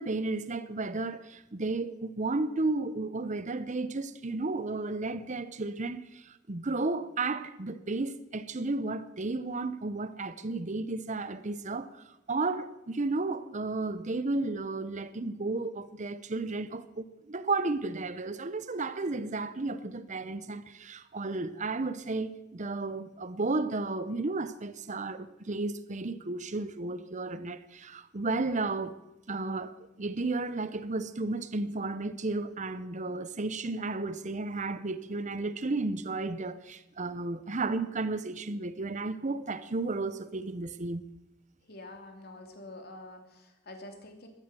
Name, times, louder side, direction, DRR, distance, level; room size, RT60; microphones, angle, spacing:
voice 1, 0.0-28.9 29.3-41.1, right 3 dB, 40° right, 0.8 m, -33 dB
voice 2, 41.7-44.3, left 2 dB, 55° left, 2.8 m, -47 dB
16.0 x 12.5 x 6.9 m
head